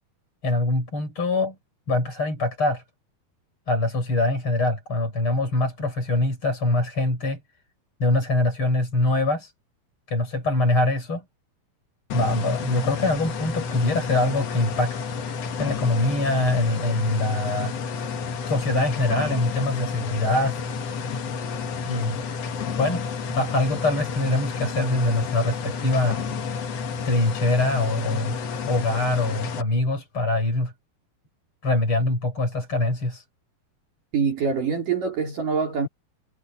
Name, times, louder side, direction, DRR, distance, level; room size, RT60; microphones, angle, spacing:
voice 1, 0.4-1.6 1.9-2.8 3.7-7.4 8.0-9.5 10.1-11.2 12.1-15.1 15.6-17.8 18.5-20.6 21.8-22.2 22.8-26.2 27.0-28.3 28.6-30.7 31.6-33.2, left 2 dB, 30° left, 7.3 m, -24 dB
sound 1, 12.1-29.6, left 5 dB, 55° left, 2.0 m, -30 dB
voice 2, 34.1-35.9, right 6 dB, 55° right, 5.3 m, -24 dB
omnidirectional pair, 4.4 m